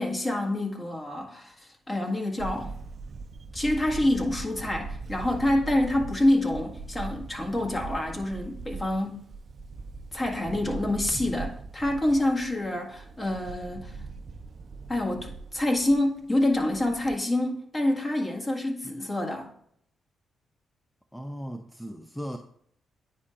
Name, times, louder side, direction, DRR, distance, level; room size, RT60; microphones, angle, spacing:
voice 1, 0.0-2.7 3.5-9.3 10.1-14.0 14.9-19.5, left 1 dB, 30° left, 1.7 m, -27 dB
Camera, 2.4-17.2, right 4 dB, 55° right, 0.5 m, -40 dB
voice 2, 21.1-22.4, equal, 5° left, 0.6 m, -37 dB
9.6 x 4.4 x 2.5 m
supercardioid pair, 50°, 0 cm